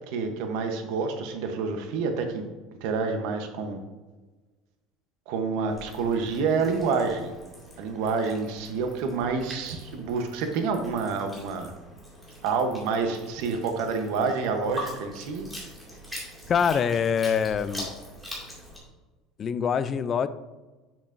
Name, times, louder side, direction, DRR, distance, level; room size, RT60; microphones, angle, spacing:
voice 1, 0.1-2.4 2.8-3.8 5.3-7.3 7.8-11.7 12.4-15.5, right 4 dB, 70° right, 5 dB, 0.8 m, -28 dB
sound 1, 5.7-18.8, equal, ahead, 2.2 m, -43 dB
voice 2, 16.5-17.9 19.4-20.3, left 7 dB, 30° left, 14 dB, 0.3 m, -24 dB
7.9 x 7.1 x 2.5 m, 1.2 s
cardioid pair, 160°, 0 cm